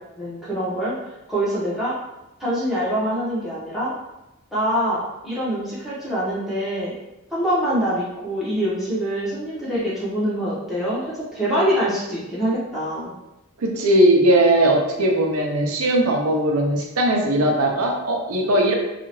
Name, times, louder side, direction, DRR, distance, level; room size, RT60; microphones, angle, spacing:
voice 1, 0.2-0.9 1.3-1.9 2.4-3.9 4.5-6.9 7.3-13.1, equal, ahead, -10 dB, 0.9 m, -24 dB
voice 2, 13.6-18.7, right 1 dB, 85° right, 1 dB, 0.6 m, -19 dB
2.7 x 2.4 x 2.9 m, 0.96 s
head